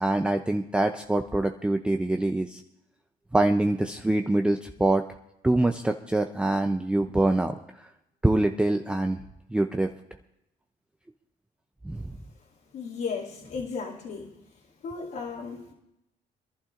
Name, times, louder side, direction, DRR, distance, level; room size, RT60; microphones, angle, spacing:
voice 1, 0.0-2.6 3.3-5.0 5.4-7.9 8.2-9.2 9.5-9.9 11.8-12.1, right 2 dB, 5° right, 5 dB, 0.5 m, -25 dB
voice 2, 12.7-14.3 14.8-15.7, left 5 dB, 60° left, -5 dB, 2.5 m, -35 dB
26.5 x 11.5 x 2.5 m, 0.86 s
cardioid pair, 110°, 17 cm